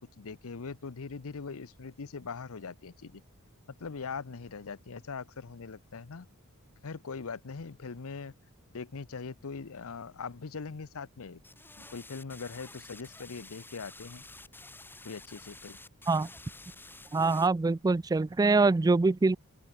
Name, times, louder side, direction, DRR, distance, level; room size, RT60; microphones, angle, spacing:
voice 1, 0.0-3.2 3.8-6.3 6.8-8.3 8.7-11.4 11.8-14.2 15.0-15.8, left 5 dB, 70° left, 0.7 m, -41 dB
sound 1, 11.4-17.5, left 2 dB, 10° left, 2.4 m, -50 dB
voice 2, 17.1-19.4, right 3 dB, 15° right, 0.3 m, -24 dB
open air
head